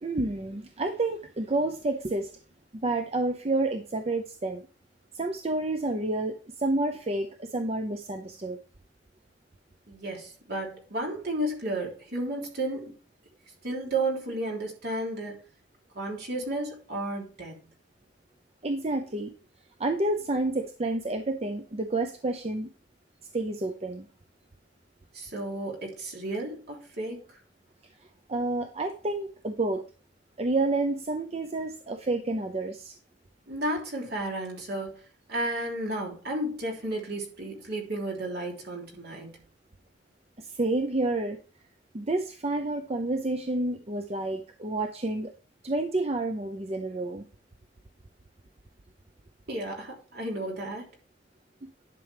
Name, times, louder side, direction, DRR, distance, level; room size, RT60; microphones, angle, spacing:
voice 1, 0.0-2.3 2.7-4.6 5.1-8.6 18.6-19.3 19.8-22.7 23.3-24.1 28.3-29.8 30.4-33.0 40.4-41.4 41.9-45.3 45.6-47.2, right 2 dB, 35° right, 0.7 m, -29 dB
voice 2, 9.9-12.9 13.6-15.4 15.9-17.6 25.1-27.2 33.5-35.0 35.3-39.4 49.5-50.9, right 1 dB, 60° right, 3.3 m, -33 dB
11.0 x 6.1 x 3.4 m
head